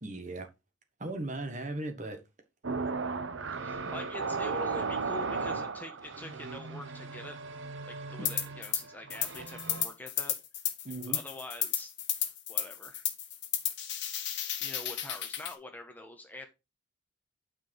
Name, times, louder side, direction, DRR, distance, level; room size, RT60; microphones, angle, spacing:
voice 1, 0.0-0.5 1.0-2.2 8.2-8.3 10.8-11.2, right 2 dB, 35° right, 1.4 m, -37 dB
sound 1, 2.6-9.9, right 4 dB, 65° right, 0.9 m, -36 dB
voice 2, 3.6-7.4 7.9-10.3 11.1-11.9 12.5-13.0 14.6-16.5, left 1 dB, 10° left, 1.1 m, -45 dB
sound 2, 8.2-8.8 9.1-15.5, left 11 dB, 55° left, 1.5 m, -33 dB
9.3 x 4.9 x 4.6 m
head